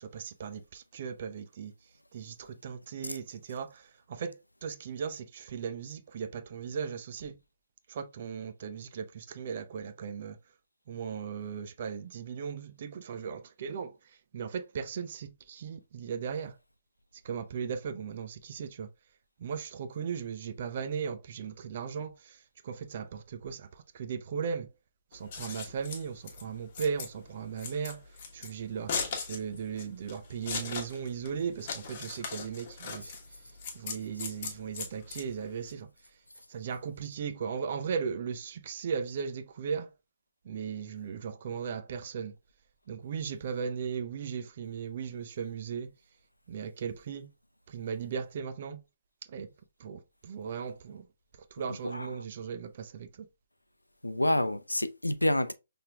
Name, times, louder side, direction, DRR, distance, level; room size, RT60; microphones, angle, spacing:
voice 1, 0.0-1.7 2.1-3.8 4.1-4.4 4.6-7.4 7.9-10.4 10.9-13.9 14.3-16.5 17.2-18.9 19.4-22.1 22.6-23.7 23.9-24.7 25.1-28.0 28.3-28.9 29.3-33.1 33.7-35.9 36.5-39.9 40.5-42.3 42.9-45.9 46.5-47.3 47.7-48.8 49.3-49.5 49.8-51.0 51.6-53.3, right 6 dB, 40° right, 0.5 m, -37 dB
Scissors, 25.1-35.7, left 5 dB, 40° left, 1.2 m, -39 dB
voice 2, 51.7-52.1 54.0-55.5, left 1 dB, 80° left, 0.5 m, -28 dB
5.6 x 3.4 x 2.3 m
figure-of-eight pair, 130°, 0 cm